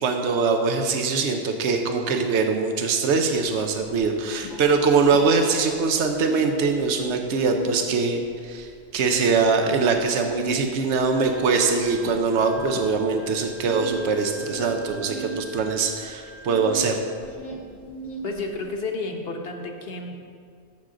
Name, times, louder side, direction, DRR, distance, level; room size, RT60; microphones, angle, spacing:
voice 1, 0.0-17.0, right 4 dB, 80° right, 4 dB, 1.0 m, -22 dB
sound 1, 4.0-5.7 6.0-7.9 8.3-16.9 17.2-18.7, right 2 dB, 85° left, 1.6 m, -38 dB
Wind instrument woodwind instrument, 11.1-16.9, right 1 dB, 20° left, 0.9 m, -45 dB
voice 2, 18.2-20.2, left 3 dB, 60° left, 3 dB, 1.2 m, -31 dB
15.0 x 6.3 x 3.8 m, 2.2 s
omnidirectional pair, 1.2 m